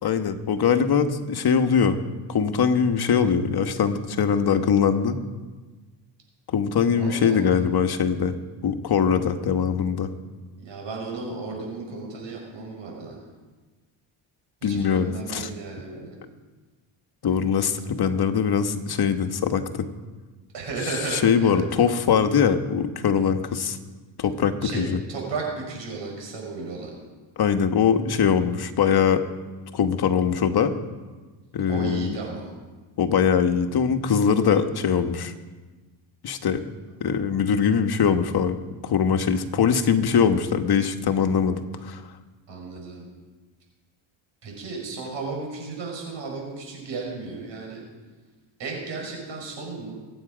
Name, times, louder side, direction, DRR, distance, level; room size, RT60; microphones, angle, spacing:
voice 1, 0.0-2.0 2.3-5.2 6.5-8.3 8.6-10.1 14.6-15.5 17.2-19.9 21.1-23.8 24.2-25.0 27.4-29.2 29.7-30.7 31.5-32.1 33.0-35.3 36.2-36.6 37.0-38.6 38.8-42.0, left 7 dB, 50° left, 8 dB, 1.4 m, -22 dB
voice 2, 7.0-7.6 10.6-13.2 14.6-16.2 20.5-21.9 24.6-26.9 31.7-32.5 42.5-43.1 44.4-47.8 48.6-50.0, right 4 dB, 60° right, -1 dB, 5.7 m, -34 dB
24.5 x 9.1 x 5.1 m, 1.3 s
cardioid pair, 95°, 49 cm